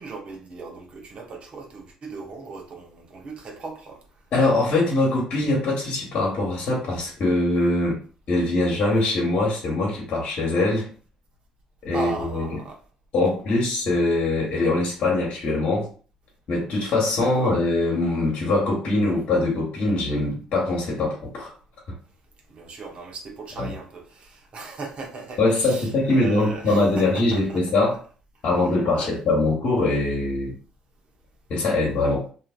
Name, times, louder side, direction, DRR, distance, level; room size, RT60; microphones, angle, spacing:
voice 1, 0.0-4.0 11.9-12.8 17.1-17.6 22.5-27.6 28.9-29.2, right 3 dB, 50° right, 0.9 m, -37 dB
voice 2, 4.3-8.0 8.3-10.9 11.8-12.6 13.1-15.9 16.5-21.5 23.6-23.7 25.4-28.0 28.4-30.5 31.5-32.2, left 2 dB, 60° left, 1.2 m, -22 dB
2.8 x 2.5 x 2.5 m
supercardioid pair, 60°, 2 cm